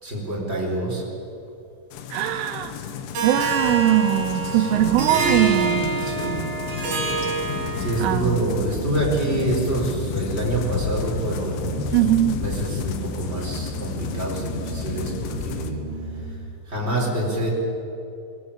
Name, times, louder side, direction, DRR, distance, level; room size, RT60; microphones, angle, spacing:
voice 1, 0.0-1.0 4.5-5.0 6.0-6.4 7.8-11.9 12.4-15.8 16.7-17.5, right 2 dB, 15° right, -3 dB, 4.1 m, -27 dB
sound 1, 1.9-15.7, left 8 dB, 80° left, 3.5 m, -32 dB
voice 2, 2.1-2.8 3.2-5.9 8.0-8.5 11.9-12.4, right 13 dB, 85° right, 7 dB, 3.4 m, -21 dB
Harp, 3.1-8.2, right 4 dB, 60° right, 5.7 m, -26 dB
sound 2, 7.5-16.3, right 3 dB, 40° right, 2.6 m, -35 dB
21.0 x 19.5 x 8.7 m, 2.8 s
omnidirectional pair, 5.6 m